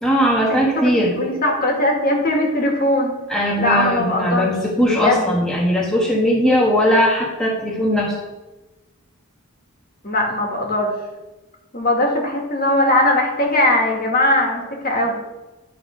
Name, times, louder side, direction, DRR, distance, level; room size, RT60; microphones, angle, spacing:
voice 1, 0.0-1.2 3.3-8.2, equal, 5° left, -4 dB, 1.2 m, -19 dB
voice 2, 1.0-3.2 3.6-5.4 10.0-10.9 11.7-15.2, left 1 dB, 45° left, 0 dB, 1.7 m, -20 dB
10.5 x 3.6 x 5.0 m, 1.1 s
head